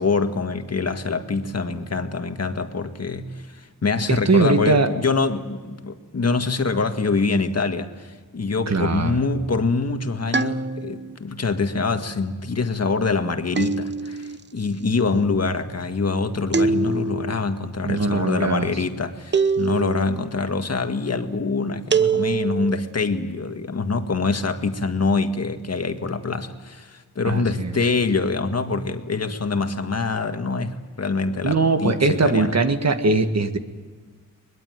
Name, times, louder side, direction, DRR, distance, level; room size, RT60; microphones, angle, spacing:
voice 1, 0.0-32.5, left 4 dB, 50° left, 1.8 m, -25 dB
voice 2, 4.1-4.9 8.7-9.2 17.8-18.7 27.2-27.7 31.4-33.6, right 3 dB, 50° right, 1.9 m, -20 dB
sound 1, 10.3-11.2 13.6-14.4 16.5-17.4 19.3-20.2 21.9-22.8, right 5 dB, 35° right, 0.9 m, -23 dB
22.5 x 21.5 x 9.4 m
wide cardioid pair, 90°, 33 cm